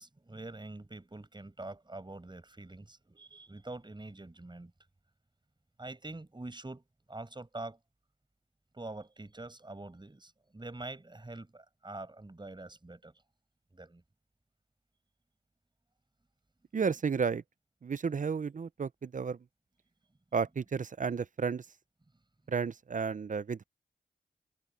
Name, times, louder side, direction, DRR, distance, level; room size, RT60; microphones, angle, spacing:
voice 1, 0.0-4.7 5.8-6.8 7.1-7.8 8.7-13.1 13.7-14.0, right 2 dB, 30° right, 5.4 m, -45 dB
voice 2, 16.7-17.4 17.8-19.4 20.3-21.7 22.5-23.6, right 5 dB, 55° right, 0.6 m, -32 dB
cardioid pair, 50°, 16 cm